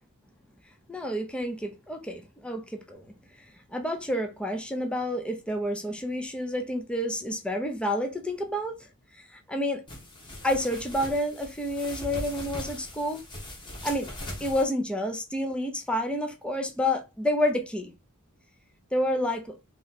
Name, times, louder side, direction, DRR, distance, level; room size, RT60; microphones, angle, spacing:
voice 1, 0.9-3.0 3.7-8.8 9.3-9.8 10.4-13.2 13.8-14.1 14.4-17.9 18.9-19.5, left 1 dB, 5° left, 0.6 m, -29 dB
sound 1, 9.9-14.6, left 1 dB, 20° left, 1.3 m, -40 dB
3.2 x 3.0 x 4.0 m
head